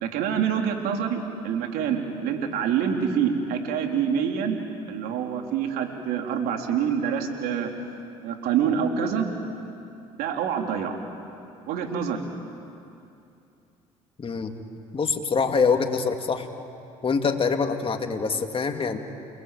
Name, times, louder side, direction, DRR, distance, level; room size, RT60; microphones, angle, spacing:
voice 1, 0.0-7.7 8.2-9.3 10.2-11.0 11.7-12.3, right 7 dB, 70° right, 3 dB, 3.6 m, -26 dB
voice 2, 14.2-14.5 14.9-16.5 17.0-19.0, left 5 dB, 35° left, 5 dB, 2.7 m, -24 dB
29.5 x 21.0 x 9.3 m, 2.6 s
hypercardioid pair, 65°, 16 cm